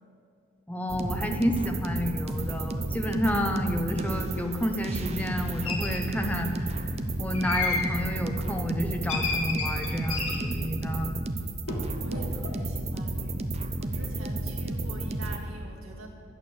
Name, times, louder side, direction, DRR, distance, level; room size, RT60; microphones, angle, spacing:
voice 1, 0.7-6.9 7.2-11.2, equal, 5° left, 3 dB, 0.9 m, -30 dB
sound 1, 0.9-15.4, right 2 dB, 30° right, 0.6 m, -32 dB
sound 2, 5.6-6.0 7.3-7.9 9.1-10.5 11.7-11.8 12.1-12.6, left 4 dB, 85° left, 2.1 m, -31 dB
voice 2, 12.0-13.5 13.8-16.1, right 2 dB, 80° right, -1 dB, 2.1 m, -43 dB
11.5 x 6.8 x 8.1 m, 2.4 s
head